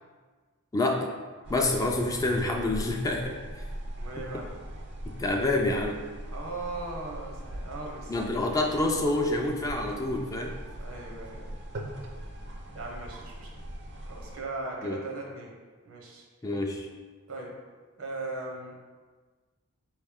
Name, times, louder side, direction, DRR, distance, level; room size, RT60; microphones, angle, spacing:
voice 1, 0.7-1.1 1.5-3.4 4.2-4.4 5.1-6.0 8.1-10.6 14.8-15.0 16.4-16.9, left 2 dB, 15° left, 1 dB, 0.3 m, -27 dB
sound 1, 1.4-14.4, right 1 dB, 55° right, 0.5 m, -41 dB
voice 2, 4.0-4.5 6.3-8.1 10.8-11.5 12.7-13.5 14.1-15.5 15.8-16.2 17.3-17.5 18.0-18.8, right 2 dB, 75° right, -1 dB, 0.9 m, -38 dB
4.2 x 3.1 x 3.5 m, 1.4 s
head